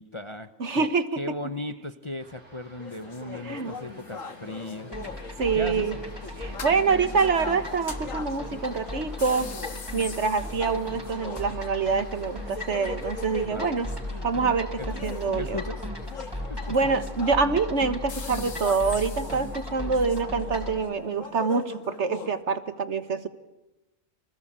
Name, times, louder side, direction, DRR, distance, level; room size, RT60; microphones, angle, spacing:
voice 1, 0.0-4.9 5.5-5.9 13.5-13.7 14.8-14.9 15.4-15.9 16.5-16.9, left 1 dB, 25° left, 10 dB, 0.9 m, -37 dB
voice 2, 0.6-1.4 3.4-3.7 5.4-6.0 6.4-9.5 9.9-13.9 14.2-15.6 16.7-23.3, right 4 dB, 60° right, 11 dB, 1.7 m, -26 dB
sound 1, 2.2-19.8, right 1 dB, 40° right, 5.8 m, -52 dB
sound 2, 2.7-22.4, left 4 dB, 75° left, 2.0 m, -40 dB
sound 3, 4.9-20.8, left 1 dB, 15° right, 5.2 m, -37 dB
30.0 x 21.5 x 8.9 m, 1.0 s
omnidirectional pair, 1.4 m